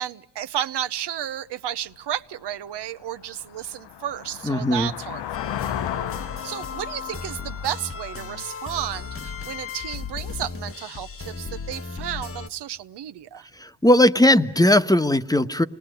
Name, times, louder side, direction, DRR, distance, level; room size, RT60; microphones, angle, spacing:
voice 1, 0.0-5.6 6.4-13.5, right 11 dB, 80° right, 0.9 m, -32 dB
sound 1, 1.9-2.0 2.5-9.1, left 11 dB, 85° left, 0.8 m, -35 dB
voice 2, 4.4-4.9 13.6-15.6, left 1 dB, 10° left, 1.2 m, -18 dB
sound 2, 5.3-12.5, left 5 dB, 35° left, 1.1 m, -35 dB
27.5 x 19.5 x 9.2 m
cardioid pair, 60°, 40 cm